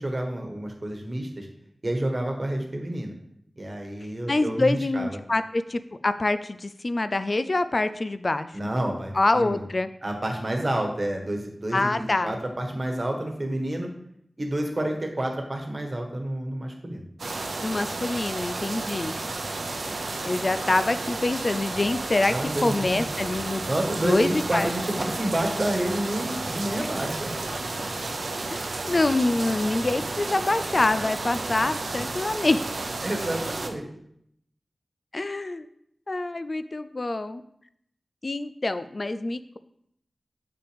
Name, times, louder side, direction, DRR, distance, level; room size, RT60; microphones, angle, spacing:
voice 1, 0.0-1.5 1.8-3.1 3.6-5.2 8.5-9.6 10.0-13.9 14.4-17.0 19.5-19.7 22.3-27.3 33.0-33.9, right 1 dB, 40° right, 2 dB, 1.3 m, -29 dB
voice 2, 4.3-8.5 9.1-9.9 11.7-12.4 17.6-19.2 20.2-22.3 22.6-23.7 24.0-24.7 26.8-26.9 28.5-32.6 35.1-35.7 36.1-37.4 38.2-39.6, left 2 dB, 45° left, 12 dB, 0.3 m, -25 dB
sound 1, 17.2-33.7, right 2 dB, 80° right, 0.6 m, -32 dB
7.1 x 5.6 x 3.4 m, 0.72 s
wide cardioid pair, 70°, 0 cm